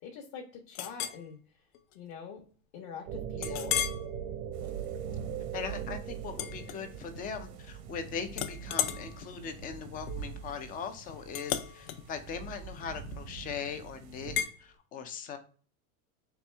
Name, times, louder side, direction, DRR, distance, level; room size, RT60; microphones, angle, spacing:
voice 1, 0.0-1.4 1.9-2.4 2.7-3.8, left 6 dB, 50° left, 1 dB, 1.0 m, -44 dB
Chink clink, 0.7-1.2 1.7-1.9 2.4-2.5 3.4-4.1 4.6-4.8 6.3-7.3 7.6-8.0 8.3-13.4 14.4-14.6, left 10 dB, 65° left, 0.7 m, -36 dB
sound 1, 3.1-8.2, right 9 dB, 50° right, 0.6 m, -39 dB
voice 2, 3.4-3.7 5.5-15.4, left 6 dB, 20° left, 8 dB, 0.3 m, -40 dB
sound 2, 4.5-14.4, right 6 dB, 75° right, 1.0 m, -46 dB
4.4 x 2.6 x 3.2 m, 0.41 s
supercardioid pair, 120°, 44 cm